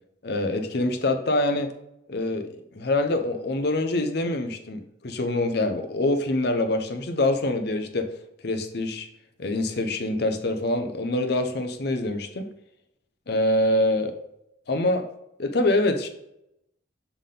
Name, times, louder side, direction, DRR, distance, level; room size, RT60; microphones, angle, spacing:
voice 1, 0.2-1.7 2.1-8.1 8.4-9.1 9.4-12.5 13.3-14.1 14.7-15.1 15.4-16.1, left 2 dB, 60° left, 7 dB, 0.7 m, -25 dB
7.0 x 3.7 x 3.8 m, 0.81 s
head